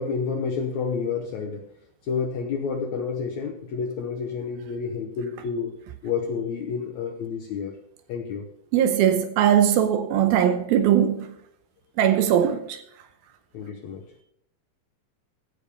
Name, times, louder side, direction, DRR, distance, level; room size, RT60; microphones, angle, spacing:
voice 1, 0.0-1.7 2.0-5.7 6.0-7.8 8.1-8.5 13.5-14.1, left 5 dB, 70° left, 1.8 m, -29 dB
voice 2, 8.7-11.3 12.0-12.8, right 10 dB, 80° right, 2.6 m, -20 dB
15.5 x 5.3 x 6.8 m
omnidirectional pair, 4.4 m